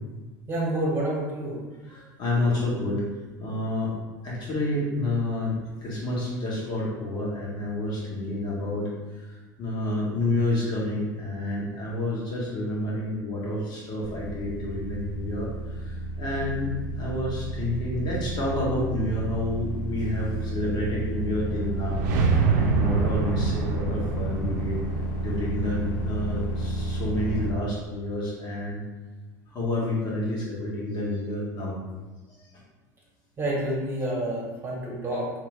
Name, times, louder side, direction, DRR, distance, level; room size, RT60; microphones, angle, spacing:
voice 1, 0.5-1.6 33.4-35.3, right 1 dB, 25° right, -3 dB, 1.3 m, -28 dB
voice 2, 1.9-3.0 3.4-3.9 4.2-24.8 25.2-28.8 29.5-31.8 32.4-32.5, left 1 dB, 50° left, -5 dB, 1.5 m, -29 dB
sound 1, 14.0-27.5, right 1 dB, 80° left, 0.7 m, -31 dB
sound 2, 21.5-26.5, right 5 dB, 75° right, 0.5 m, -26 dB
3.3 x 2.9 x 3.3 m, 1.2 s
hypercardioid pair, 85°, 10 cm